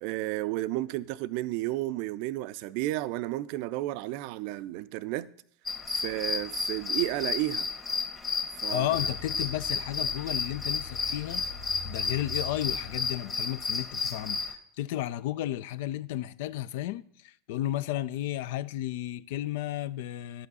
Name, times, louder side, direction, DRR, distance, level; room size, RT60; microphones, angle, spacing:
voice 1, 0.0-5.3 5.9-7.7 8.6-8.9, right 16 dB, 55° right, 0.4 m, -32 dB
sound 1, 5.7-14.5, left 5 dB, 25° left, 1.6 m, -32 dB
voice 2, 8.7-11.4 11.8-20.5, left 13 dB, 60° left, 0.4 m, -33 dB
sound 2, 8.9-13.2, left 2 dB, 85° left, 2.7 m, -44 dB
11.0 x 8.3 x 4.0 m
figure-of-eight pair, 80°, 0 cm